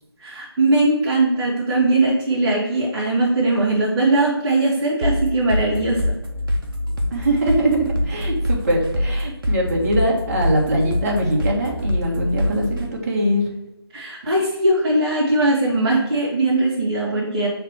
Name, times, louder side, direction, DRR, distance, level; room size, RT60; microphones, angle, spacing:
voice 1, 0.2-6.0 13.9-17.5, right 2 dB, 15° right, -9 dB, 1.8 m, -20 dB
sound 1, 5.0-12.8, left 1 dB, 55° right, 1.1 m, -24 dB
voice 2, 7.1-13.4, right 1 dB, 35° right, -2 dB, 1.5 m, -22 dB
6.5 x 3.4 x 4.5 m, 0.98 s
figure-of-eight pair, 160°, 13 cm